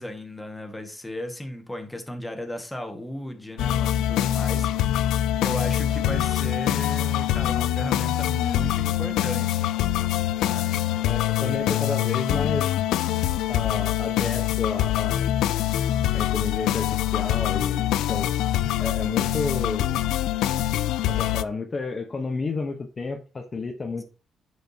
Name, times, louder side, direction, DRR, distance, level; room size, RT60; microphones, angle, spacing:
voice 1, 0.0-4.9 5.4-9.6 10.4-10.7 11.4-11.6, left 1 dB, 10° left, 1.7 m, -35 dB
sound 1, 3.6-21.4, left 12 dB, 90° left, 0.3 m, -24 dB
voice 2, 11.0-12.7 13.5-15.2 16.1-18.3 18.8-20.0 21.0-24.0, left 3 dB, 35° left, 1.0 m, -31 dB
10.5 x 5.1 x 2.9 m
cardioid pair, 90°, 0 cm